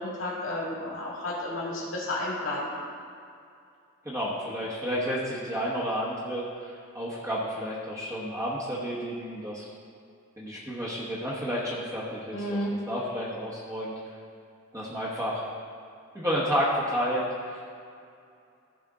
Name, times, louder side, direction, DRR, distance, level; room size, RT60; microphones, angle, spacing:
voice 1, 0.0-2.7 12.3-12.7, left 1 dB, 65° left, -6 dB, 2.1 m, -32 dB
voice 2, 4.0-9.7 10.4-13.9 14.7-15.4 16.1-17.7, equal, 15° right, -7 dB, 1.1 m, -31 dB
14.0 x 5.3 x 3.7 m, 2.4 s
head